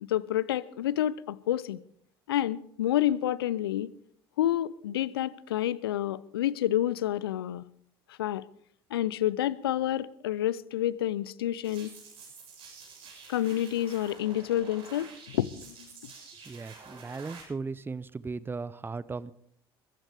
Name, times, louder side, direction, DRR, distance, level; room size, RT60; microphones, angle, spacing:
voice 1, 0.0-1.8 2.3-3.9 4.4-7.7 8.1-8.4 8.9-11.9 13.3-15.9, left 12 dB, 75° left, 0.6 m, -29 dB
sound 1, 11.6-17.4, right 5 dB, 50° right, 7.1 m, -49 dB
voice 2, 16.5-19.3, right 4 dB, 15° right, 0.7 m, -37 dB
22.0 x 15.0 x 3.5 m
figure-of-eight pair, 60°, 13 cm